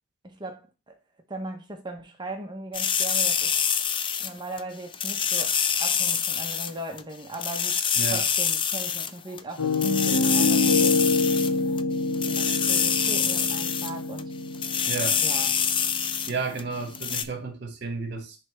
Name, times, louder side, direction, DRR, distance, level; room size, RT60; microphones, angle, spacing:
voice 1, 0.2-1.0 1.3-3.6 4.2-11.0 12.2-14.3 15.2-15.5, right 2 dB, 20° right, 0.9 m, -38 dB
atari printer, 2.7-4.6 4.9-6.7 7.0-7.1 7.3-9.1 9.4-9.5 9.7-11.8 12.1-13.9 14.2-14.3 14.5-16.3 16.6-16.7 16.9-17.2, left 7 dB, 25° left, 0.4 m, -26 dB
voice 2, 7.9-8.3 14.9-15.2 16.3-18.4, right 4 dB, 55° right, 1.5 m, -32 dB
Piano, 9.6-17.4, left 3 dB, 65° left, 1.4 m, -27 dB
9.9 x 3.3 x 3.2 m
head